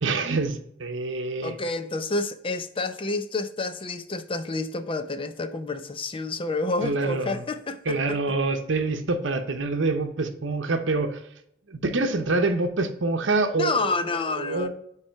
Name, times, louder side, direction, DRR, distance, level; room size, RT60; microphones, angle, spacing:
voice 1, 0.0-1.5 6.8-7.4 7.9-11.2 11.7-13.9 14.4-14.7, right 3 dB, 70° right, 0.9 m, -26 dB
voice 2, 1.4-8.2 13.5-14.7, left 3 dB, 30° left, 0.5 m, -29 dB
9.7 x 3.3 x 4.5 m
head